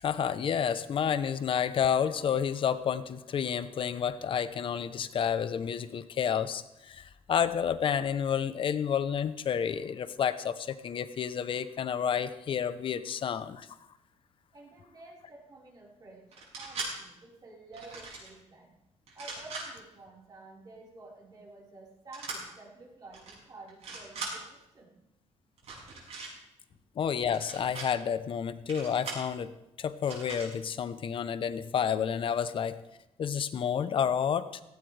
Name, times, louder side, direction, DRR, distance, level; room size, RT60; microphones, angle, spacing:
voice 1, 0.0-13.7 27.0-29.5 29.8-32.8 33.2-34.6, left 8 dB, 45° left, 12 dB, 0.8 m, -30 dB
voice 2, 14.5-16.2 16.6-18.7 19.1-25.0, right 2 dB, 35° right, -4 dB, 4.7 m, -51 dB
sound 1, 16.3-16.9 17.7-18.3 19.1-19.7 22.1-22.4 23.1-23.3 23.7-24.3 25.6-26.3 27.3-27.9 28.7-29.3 30.0-30.5, right 4 dB, 65° right, 6.8 m, -40 dB
17.0 x 16.5 x 3.4 m, 0.90 s
cardioid pair, 145°, 12 cm